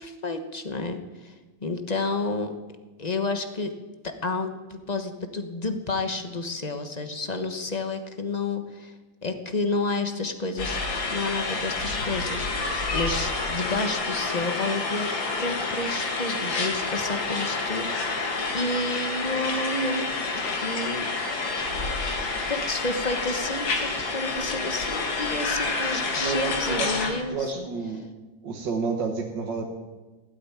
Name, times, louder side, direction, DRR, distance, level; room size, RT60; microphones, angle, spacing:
voice 1, 0.0-1.3 1.6-2.5 3.0-3.7 4.0-8.9 9.2-10.8 11.1-21.1 22.5-27.7, left 2 dB, 25° left, 7 dB, 1.0 m, -30 dB
sound 1, 10.6-27.1, left 3 dB, 75° left, 2.7 m, -28 dB
voice 2, 25.9-28.0 28.4-29.7, right 4 dB, 65° right, 0 dB, 2.1 m, -31 dB
16.0 x 8.2 x 9.8 m, 1.2 s
omnidirectional pair, 2.1 m